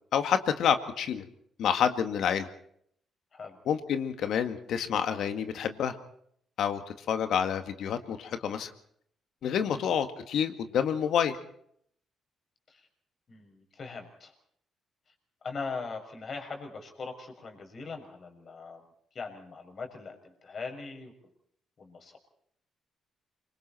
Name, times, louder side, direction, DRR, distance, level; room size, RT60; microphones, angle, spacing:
voice 1, 0.1-1.2 1.6-2.5 3.7-6.0 6.6-6.8 7.1-8.7 9.4-11.3, left 8 dB, 70° left, 8 dB, 2.0 m, -28 dB
voice 2, 9.4-9.8 12.7-12.9 13.3-14.3 15.4-18.8 19.1-21.1 21.8-22.2, left 4 dB, 45° left, 4 dB, 6.2 m, -41 dB
26.5 x 24.5 x 4.5 m, 0.67 s
cardioid pair, 85°, 0 cm